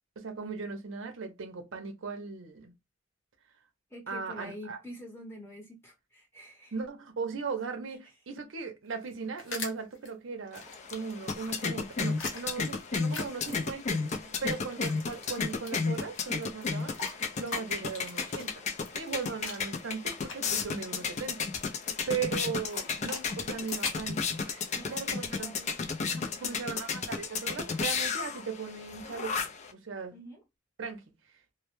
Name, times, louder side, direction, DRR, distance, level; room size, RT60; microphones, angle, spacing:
voice 1, 0.2-2.7 4.1-4.8 6.7-10.6 10.9-17.0 17.4-18.7 18.9-21.5 21.8-24.2 24.4-24.6 24.9-25.5 26.2-30.1 30.8-31.0, right 5 dB, 70° right, 0.6 m, -38 dB
voice 2, 3.9-6.8 7.9-8.1 14.2-14.7 21.8-22.1 24.7-25.8 26.0-26.6 30.1-30.4, equal, 10° left, 0.8 m, -48 dB
sound 1, 8.9-10.1 10.5-14.1 14.4-21.3 22.6-25.0, left 3 dB, 75° left, 0.9 m, -43 dB
sound 2, 10.5-29.7, left 5 dB, 35° left, 0.3 m, -33 dB
2.1 x 2.1 x 2.9 m
head